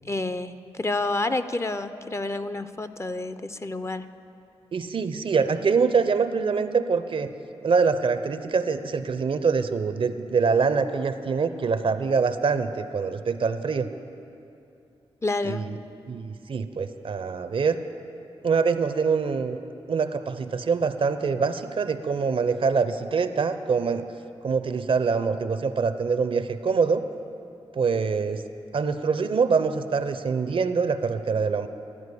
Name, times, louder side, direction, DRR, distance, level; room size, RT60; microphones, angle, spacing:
voice 1, 0.1-4.1 15.2-15.6, left 2 dB, 25° left, 11 dB, 0.5 m, -29 dB
voice 2, 4.7-7.3 7.6-13.9 15.4-15.7 16.1-17.8 18.4-19.6 19.9-24.0 24.4-27.0 27.7-28.4 28.7-31.7, right 5 dB, 55° right, 11 dB, 0.5 m, -24 dB
12.5 x 4.6 x 8.3 m, 2.7 s
supercardioid pair, 40°, 11 cm